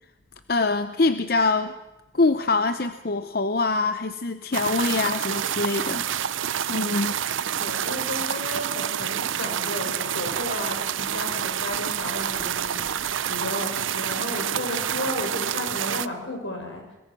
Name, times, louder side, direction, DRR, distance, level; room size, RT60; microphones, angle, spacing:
voice 1, 0.5-1.7 2.1-6.1 6.7-7.2, left 3 dB, 50° left, 10 dB, 0.7 m, -24 dB
sound 1, 4.5-16.1, right 9 dB, 90° right, 0.6 m, -28 dB
voice 2, 7.6-16.9, left 1 dB, 80° left, 2 dB, 6.2 m, -33 dB
22.0 x 21.5 x 6.2 m, 1.0 s
head